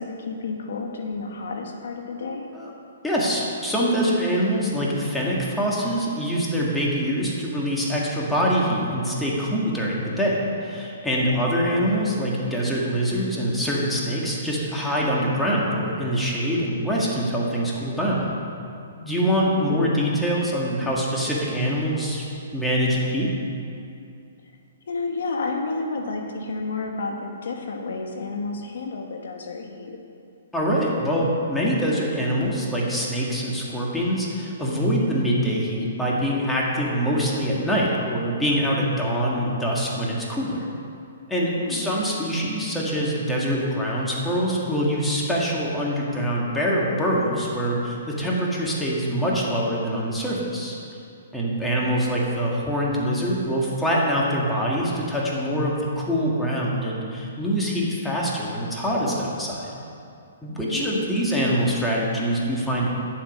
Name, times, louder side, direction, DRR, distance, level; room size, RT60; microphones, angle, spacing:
voice 1, 0.0-2.5 11.2-11.5 19.6-19.8 24.9-30.0 41.6-41.9 51.8-52.1 60.7-61.0, left 3 dB, 75° left, 3 dB, 1.2 m, -31 dB
voice 2, 3.0-18.3 19.0-22.3 22.5-23.4 30.5-40.6 41.3-50.7 51.3-59.7 60.4-63.0, equal, 5° left, -5 dB, 1.8 m, -24 dB
10.5 x 7.5 x 5.4 m, 2.5 s
hypercardioid pair, 145°, 0 cm